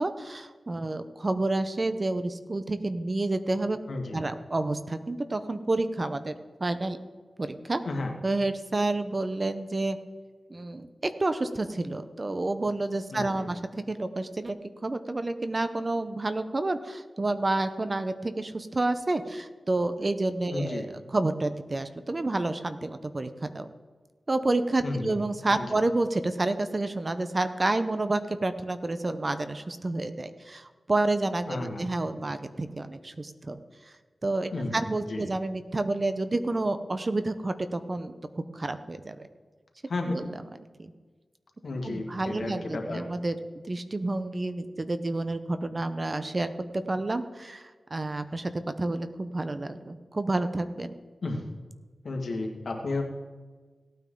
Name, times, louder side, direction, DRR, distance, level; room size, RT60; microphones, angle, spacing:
voice 1, 0.0-3.8 4.1-7.0 7.4-7.8 8.2-10.0 10.5-14.5 14.8-23.7 24.3-33.6 34.2-39.3 40.0-40.3 40.8-40.9 41.8-51.0, right 2 dB, 40° right, 10 dB, 0.8 m, -29 dB
voice 2, 3.9-4.2 7.9-8.1 13.1-13.5 20.5-20.8 24.8-25.2 25.5-25.6 31.5-31.9 34.5-35.3 39.9-40.2 41.6-43.0 51.2-51.5 52.0-53.0, left 2 dB, 75° left, 2 dB, 1.9 m, -33 dB
17.5 x 9.3 x 3.8 m, 1.4 s
wide cardioid pair, 65°, 0 cm